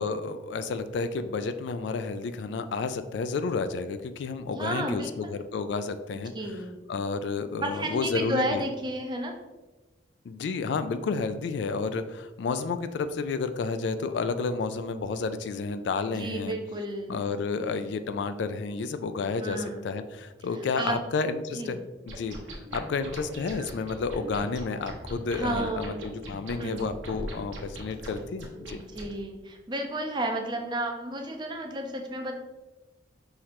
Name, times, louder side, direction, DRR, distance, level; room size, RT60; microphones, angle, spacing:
voice 1, 0.0-6.3 6.9-8.6 10.3-16.6 17.1-21.8 22.1-22.4 22.7-28.8, left 4 dB, 70° left, 10 dB, 0.3 m, -31 dB
voice 2, 4.5-5.3 6.1-6.8 7.6-9.3 16.1-17.1 19.4-19.8 20.5-21.0 21.5-21.8 25.3-25.9 26.6-26.8 28.7-32.3, right 1 dB, 25° right, 3 dB, 0.5 m, -32 dB
sound 1, 22.1-29.1, right 1 dB, 85° right, 1.0 m, -41 dB
5.7 x 3.2 x 2.9 m, 1.1 s
head